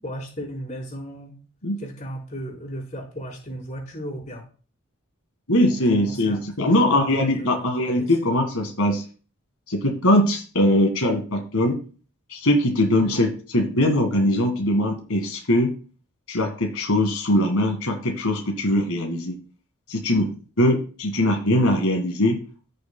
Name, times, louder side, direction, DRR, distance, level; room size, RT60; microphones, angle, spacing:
voice 1, 0.0-1.3 1.8-4.4 5.7-7.7 8.0-8.1 13.0-13.2, equal, 35° left, -3 dB, 3.8 m, -35 dB
voice 2, 5.5-9.0 9.7-11.8 12.3-15.7 16.3-19.4 19.9-20.3 20.6-22.4, left 1 dB, 85° left, 2 dB, 1.8 m, -21 dB
15.0 x 6.6 x 2.2 m, 0.38 s
head